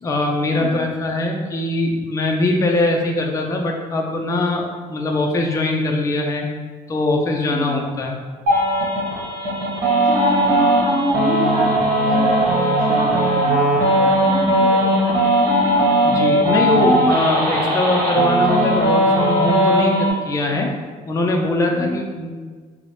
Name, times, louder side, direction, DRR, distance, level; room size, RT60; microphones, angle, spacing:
voice 1, 0.0-6.5 6.9-8.2 16.0-20.7 21.1-22.3, left 2 dB, 20° left, 1 dB, 0.4 m, -21 dB
sound 1, 8.5-20.1, right 1 dB, 55° right, 1.1 m, -18 dB
voice 2, 9.9-15.5 21.7-21.9, equal, 25° right, -12 dB, 1.2 m, -27 dB
3.0 x 2.1 x 4.1 m, 1.5 s
cardioid pair, 110°, 17 cm